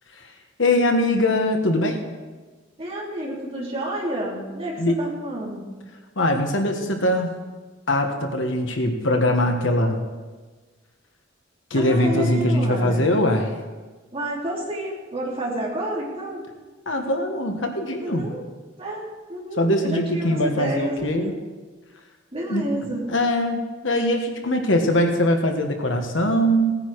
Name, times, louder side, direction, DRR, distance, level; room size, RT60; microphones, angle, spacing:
voice 1, 0.6-2.0 4.8-5.0 6.1-7.4 7.9-10.0 11.7-13.5 16.8-18.3 19.6-21.3 22.5-26.7, left 1 dB, 70° left, 4 dB, 1.5 m, -22 dB
voice 2, 2.8-5.8 11.7-13.1 14.1-16.5 18.0-18.4 18.8-19.0 19.3-21.4 22.3-23.0, right 1 dB, 30° right, -4 dB, 3.1 m, -30 dB
17.5 x 9.5 x 4.8 m, 1.3 s
head